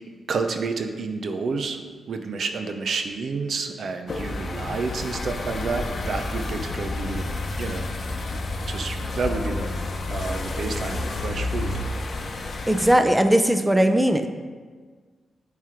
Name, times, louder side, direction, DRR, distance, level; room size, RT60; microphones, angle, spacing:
voice 1, 0.1-1.8 2.1-7.3 7.6-7.9 8.7-9.7 10.1-11.7, right 4 dB, 70° right, 6 dB, 0.5 m, -29 dB
sound 1, 4.1-12.9, left 2 dB, 60° left, 0.7 m, -30 dB
voice 2, 12.7-14.3, right 1 dB, 10° right, 7 dB, 0.6 m, -19 dB
8.8 x 3.3 x 4.4 m, 1.5 s
cardioid pair, 55°, 0 cm